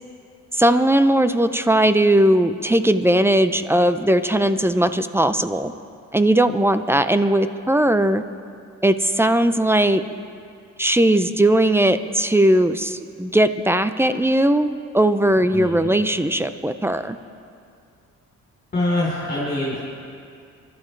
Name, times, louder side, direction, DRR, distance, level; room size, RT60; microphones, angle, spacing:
voice 1, 0.5-5.7 6.1-8.2 8.8-10.0 10.8-14.7 14.9-17.2, right 1 dB, 10° right, 11 dB, 0.6 m, -18 dB
voice 2, 15.5-15.9 18.7-19.8, left 1 dB, 30° left, -7 dB, 4.0 m, -24 dB
27.0 x 12.0 x 3.3 m, 2.3 s
cardioid pair, 90°, 30 cm